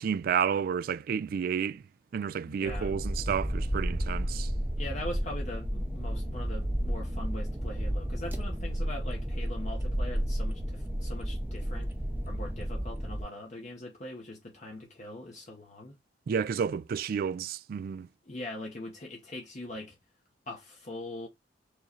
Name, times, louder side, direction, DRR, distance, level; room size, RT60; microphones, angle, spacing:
voice 1, 0.0-1.8 2.1-4.5 16.3-18.1, right 7 dB, 55° right, 0.3 m, -31 dB
voice 2, 2.5-3.0 4.8-11.9 12.3-16.0 18.3-20.0 20.5-21.3, left 1 dB, 45° left, 0.9 m, -41 dB
sound 1, 2.7-13.2, equal, 10° right, 0.6 m, -32 dB
4.5 x 3.0 x 2.8 m
head